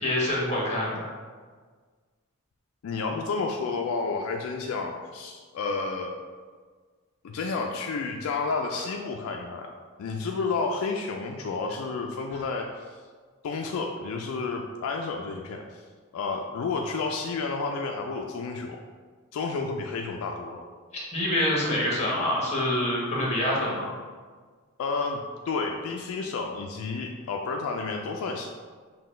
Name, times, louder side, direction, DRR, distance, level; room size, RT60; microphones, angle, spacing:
voice 1, 0.0-1.1 12.3-12.4 21.1-23.9, left 1 dB, 30° left, -4 dB, 1.1 m, -26 dB
voice 2, 2.8-6.2 7.2-9.7 10.0-12.9 13.4-15.8 16.1-18.8 19.3-20.6 24.8-25.2 25.5-28.5, left 4 dB, 75° left, 2 dB, 0.3 m, -31 dB
5.7 x 2.2 x 3.2 m, 1.5 s
head